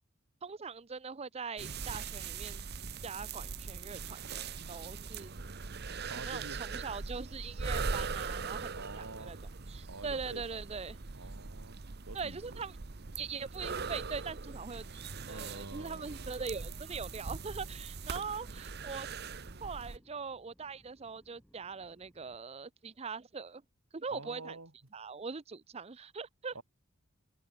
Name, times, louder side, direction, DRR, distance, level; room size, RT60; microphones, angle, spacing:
voice 1, 0.4-2.6 3.0-5.3 6.1-8.7 9.0-9.4 9.7-11.0 12.1-12.7 13.2-15.0 15.3-19.1 19.6-23.6 23.9-24.6 24.9-26.5, right 5 dB, 30° right, 0.6 m, -41 dB
sound 1, 1.6-20.0, right 4 dB, 50° right, 1.0 m, -41 dB
voice 2, 6.1-6.6 8.7-9.4 9.9-10.4 11.1-11.8 12.1-12.6 15.3-16.3 24.1-24.7 26.5-26.6, right 3 dB, 80° right, 2.7 m, -47 dB
sound 2, 14.8-22.4, equal, 5° left, 3.1 m, -66 dB
head